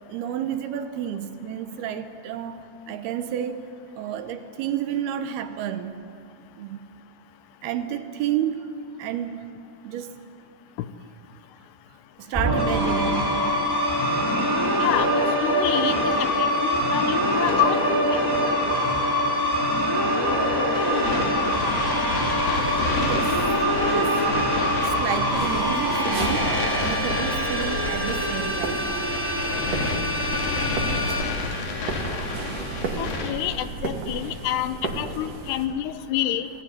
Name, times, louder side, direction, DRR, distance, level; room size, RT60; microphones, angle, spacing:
voice 1, 0.1-3.7 4.0-6.0 6.6-6.8 7.6-8.7 9.0-9.5 9.8-10.2 12.2-13.4 23.0-23.4 23.8-24.2 24.8-29.1 34.8-34.9, right 10 dB, 75° right, 9 dB, 2.7 m, -30 dB
sound 1, 12.3-31.2, equal, 5° right, 2.6 m, -24 dB
voice 2, 14.8-18.2 33.0-36.5, left 12 dB, 75° left, 12 dB, 2.9 m, -28 dB
sound 2, 20.7-33.3, left 3 dB, 55° left, 4.1 m, -31 dB
sound 3, 25.3-35.7, right 3 dB, 50° right, 3.6 m, -34 dB
27.5 x 19.0 x 9.6 m, 2.4 s
omnidirectional pair, 5.0 m